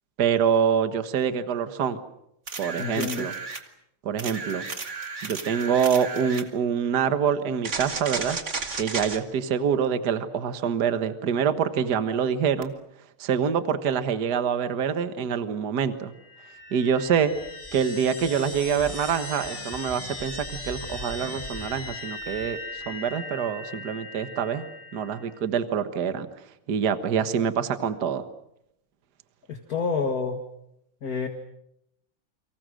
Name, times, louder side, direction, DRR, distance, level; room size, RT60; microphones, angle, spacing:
voice 1, 0.2-2.0 2.6-3.3 4.0-4.7 5.2-8.4 8.8-12.7 13.2-16.1 16.7-17.3 17.7-22.6 22.9-24.6 24.9-26.3 26.7-28.2, right 7 dB, 50° right, 10 dB, 1.8 m, -25 dB
sound 1, 2.5-3.7 4.2-6.5 7.6-9.2 12.6-12.7, right 4 dB, 35° right, 2.0 m, -33 dB
voice 2, 2.8-3.3 29.5-30.4 31.0-31.3, left 5 dB, 45° left, 5 dB, 2.2 m, -28 dB
sound 2, 16.1-25.4, left 2 dB, 15° left, 2.1 m, -38 dB
30.0 x 25.0 x 6.4 m, 0.79 s
omnidirectional pair, 2.4 m